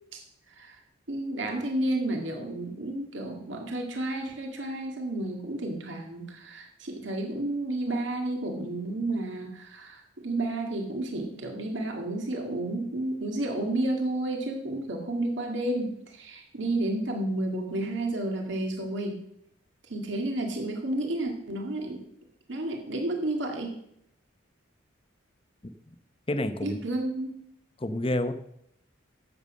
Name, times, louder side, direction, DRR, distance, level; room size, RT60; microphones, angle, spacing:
voice 1, 1.1-19.2 19.9-22.0 22.5-23.8 26.6-27.3, right 1 dB, 65° right, 2 dB, 2.0 m, -31 dB
voice 2, 26.3-26.8 27.8-28.3, left 1 dB, 25° left, 9 dB, 0.8 m, -28 dB
11.0 x 8.1 x 6.3 m, 0.74 s
head